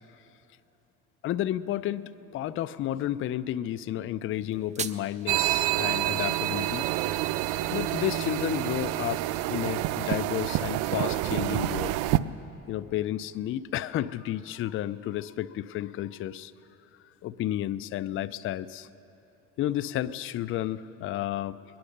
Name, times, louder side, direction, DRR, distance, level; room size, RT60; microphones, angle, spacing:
voice 1, 1.2-6.9 7.7-11.9 12.7-16.5 17.2-18.9 19.6-21.6, left 12 dB, 45° left, 14 dB, 0.4 m, -32 dB
sound 1, 4.3-5.3, right 6 dB, 25° right, 0.5 m, -37 dB
sound 2, 5.3-12.2, right 15 dB, 80° right, 0.5 m, -28 dB
21.5 x 10.0 x 6.6 m, 2.9 s
cardioid pair, 100°, 30 cm